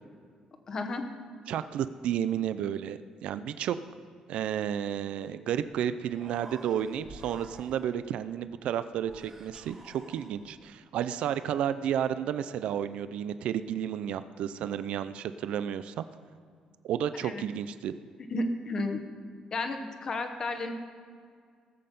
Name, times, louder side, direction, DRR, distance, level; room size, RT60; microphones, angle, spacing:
voice 1, 0.7-1.0 17.2-17.4 18.3-19.0 19.5-20.7, left 2 dB, 30° left, 6 dB, 1.0 m, -32 dB
voice 2, 1.5-3.8 4.3-16.1 16.8-17.9, right 9 dB, 65° right, 12 dB, 0.4 m, -32 dB
Human voice, 6.0-8.1 9.0-10.7, right 2 dB, 15° right, 1.1 m, -50 dB
18.5 x 7.7 x 5.3 m, 2.1 s
cardioid pair, 175°, 2 cm